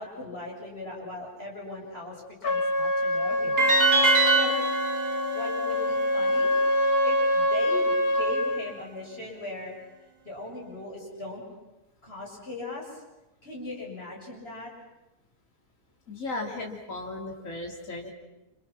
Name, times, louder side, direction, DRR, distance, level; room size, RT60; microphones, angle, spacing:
voice 1, 0.0-3.7 4.1-4.8 5.3-6.5 7.0-9.7 10.2-11.4 12.0-13.0 13.4-14.7, left 2 dB, 40° left, -3 dB, 7.4 m, -39 dB
Trumpet, 2.4-8.6, left 1 dB, 70° left, 3.1 m, -25 dB
sound 1, 3.6-6.7, right 3 dB, 80° right, 4.3 m, -24 dB
voice 2, 16.1-18.1, left 2 dB, 55° left, 0 dB, 3.6 m, -36 dB
29.0 x 28.5 x 6.0 m, 1.0 s
omnidirectional pair, 1.6 m